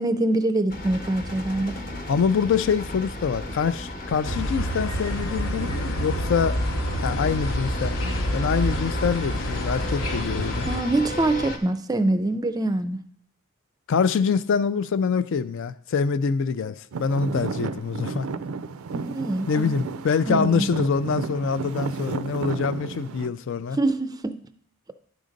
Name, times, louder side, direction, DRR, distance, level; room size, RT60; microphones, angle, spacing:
voice 1, 0.0-1.7 10.7-13.0 18.9-19.8 20.3-20.7 23.8-24.4, right 2 dB, 20° right, 10 dB, 0.4 m, -24 dB
sound 1, 0.7-11.6, left 1 dB, 45° left, 0.9 m, -35 dB
voice 2, 2.1-6.6 7.0-7.9 8.3-10.7 13.9-18.3 19.5-23.8, left 6 dB, 60° left, 14 dB, 0.4 m, -25 dB
sound 2, 4.2-10.8, equal, 75° left, 0.9 m, -28 dB
Traffic noise roadway noise / Engine, 16.9-23.3, right 4 dB, 80° right, 0.4 m, -32 dB
11.5 x 3.9 x 5.1 m, 0.63 s
head